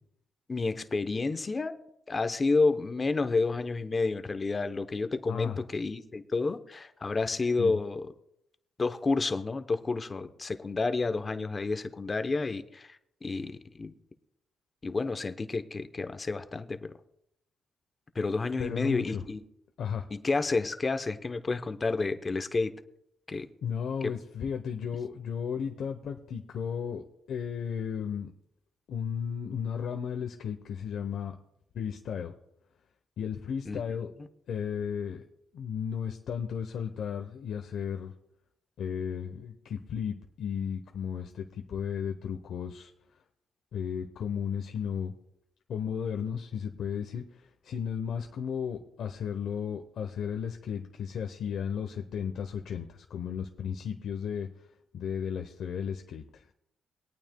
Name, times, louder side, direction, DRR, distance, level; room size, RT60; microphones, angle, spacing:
voice 1, 0.5-1.8 2.1-8.1 8.8-13.0 13.2-13.5 13.8-13.9 14.8-16.9 18.1-19.4 20.1-22.7 23.3-23.5 33.7-33.8, left 3 dB, 30° left, 9 dB, 0.8 m, -30 dB
voice 2, 5.3-5.6 7.6-7.7 18.6-19.2 19.8-20.1 23.6-28.3 28.9-31.4 31.7-32.3 33.2-34.1 34.5-35.2 35.5-38.1 38.8-42.9 43.7-45.1 45.7-54.7 54.9-56.5, left 7 dB, 65° left, 4 dB, 0.8 m, -34 dB
22.5 x 9.0 x 2.3 m, 0.78 s
cardioid pair, 90°, 0 cm